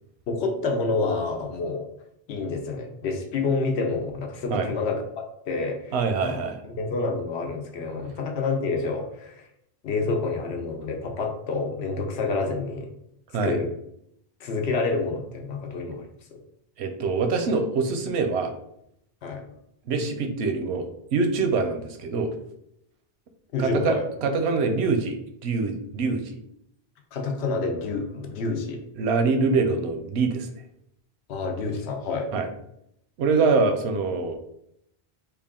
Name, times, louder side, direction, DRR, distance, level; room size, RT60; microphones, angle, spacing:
voice 1, 0.3-1.9 2.3-6.0 6.2-9.5 9.8-12.9 13.4-13.7 14.4-16.4 19.2-19.5 23.5-24.0 27.1-28.8 31.3-32.3, left 3 dB, 80° left, 4 dB, 0.9 m, -28 dB
voice 2, 5.9-6.6 13.3-13.5 16.8-18.6 19.9-22.3 23.6-25.1 25.4-26.4 29.0-30.5 32.3-32.5 33.2-34.3, right 4 dB, 85° right, 6 dB, 0.8 m, -24 dB
3.4 x 2.4 x 3.6 m, 0.75 s
omnidirectional pair, 1.1 m